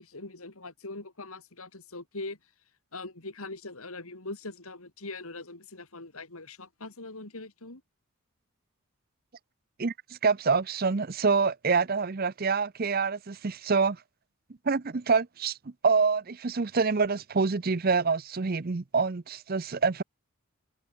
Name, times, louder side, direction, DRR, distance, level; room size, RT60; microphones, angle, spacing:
voice 1, 0.0-2.4 2.9-7.8, left 2 dB, 70° left, 3.1 m, -41 dB
voice 2, 10.2-14.0 14.7-15.6 15.8-20.0, right 4 dB, 40° right, 0.6 m, -26 dB
head